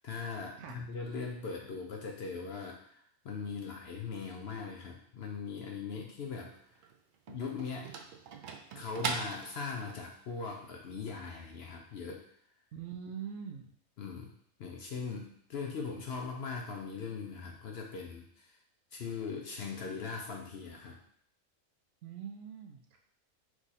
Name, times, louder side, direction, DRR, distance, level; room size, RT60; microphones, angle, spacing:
voice 1, 0.0-6.5 7.3-7.9 8.7-12.2 14.0-14.3 14.6-18.6 18.9-21.0, left 5 dB, 60° left, 1 dB, 0.7 m, -40 dB
sound 1, 6.5-10.0, right 5 dB, 90° right, 0.4 m, -40 dB
voice 2, 12.7-13.6 22.0-23.0, right 7 dB, 70° right, 3 dB, 0.9 m, -43 dB
4.7 x 2.4 x 4.0 m, 0.66 s
omnidirectional pair, 1.4 m